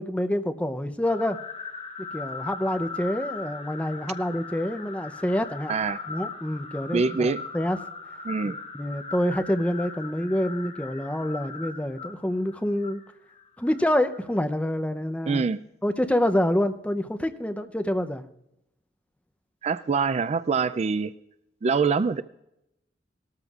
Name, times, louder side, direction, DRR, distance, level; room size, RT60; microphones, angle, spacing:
voice 1, 0.0-1.4 2.0-5.7 6.1-7.8 8.4-13.0 13.6-15.4 15.8-18.2, left 1 dB, 5° left, 7 dB, 0.6 m, -27 dB
sound 1, 1.0-14.4, left 4 dB, 35° left, 1.1 m, -39 dB
voice 2, 6.9-7.4 8.2-8.6 15.3-15.6 19.6-21.1 21.6-22.2, right 5 dB, 35° right, 14 dB, 0.3 m, -24 dB
18.5 x 13.0 x 2.4 m, 0.83 s
head